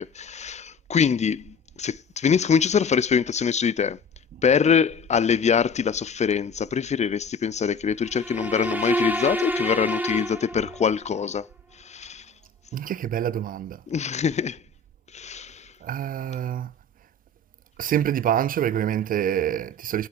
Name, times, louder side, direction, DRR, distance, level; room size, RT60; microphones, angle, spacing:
voice 1, 0.0-4.0 4.4-11.5 11.8-12.3 13.9-14.6 15.1-15.7, left 7 dB, 50° left, 0.5 m, -24 dB
sound 1, 8.0-11.1, right 1 dB, 10° right, 1.2 m, -28 dB
voice 2, 12.7-13.8 15.8-16.7 17.8-20.1, right 10 dB, 70° right, 0.4 m, -26 dB
8.3 x 7.0 x 4.7 m
supercardioid pair, 40°, 15 cm